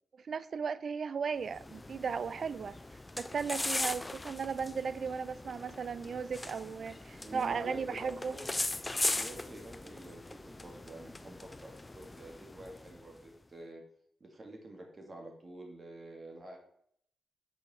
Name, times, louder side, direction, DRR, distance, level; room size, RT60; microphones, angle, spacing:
voice 1, 0.2-2.8 3.2-8.3, right 6 dB, 55° right, 0.4 m, -36 dB
sound 1, 1.4-13.2, left 2 dB, 20° left, 0.3 m, -39 dB
voice 2, 7.1-8.5 8.9-13.8 14.2-16.6, right 1 dB, 35° right, 2.1 m, -48 dB
6.3 x 4.8 x 4.4 m
cardioid pair, 85°, 0 cm